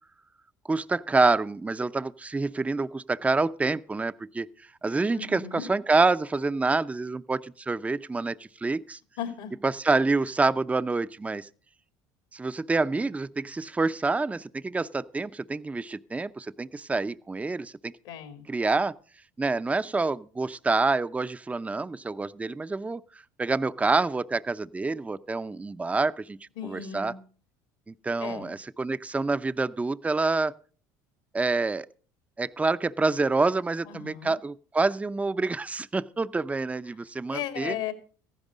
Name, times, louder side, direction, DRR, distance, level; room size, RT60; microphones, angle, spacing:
voice 1, 0.7-4.5 4.8-9.0 9.6-11.5 12.3-17.9 18.5-18.9 19.4-23.0 23.4-26.4 26.6-27.1 27.9-30.5 31.3-31.9 32.4-37.8, right 3 dB, 15° right, 0.6 m, -27 dB
voice 2, 5.1-5.7 9.2-9.5 18.0-18.4 26.6-27.2 28.2-28.5 33.8-34.3 37.3-37.9, left 9 dB, 80° left, 2.6 m, -36 dB
15.0 x 11.0 x 5.0 m
supercardioid pair, 85°, 10 cm